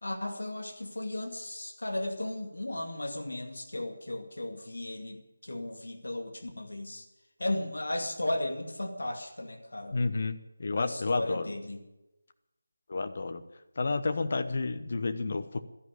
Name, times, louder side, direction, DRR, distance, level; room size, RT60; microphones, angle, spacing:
voice 1, 0.0-7.0 7.4-10.0 10.8-11.8, left 1 dB, 60° left, 3 dB, 2.3 m, -35 dB
voice 2, 9.9-11.5 12.9-13.4 13.8-15.6, left 3 dB, 40° left, 9 dB, 1.0 m, -30 dB
12.5 x 11.0 x 8.7 m, 0.98 s
figure-of-eight pair, 160°, 0 cm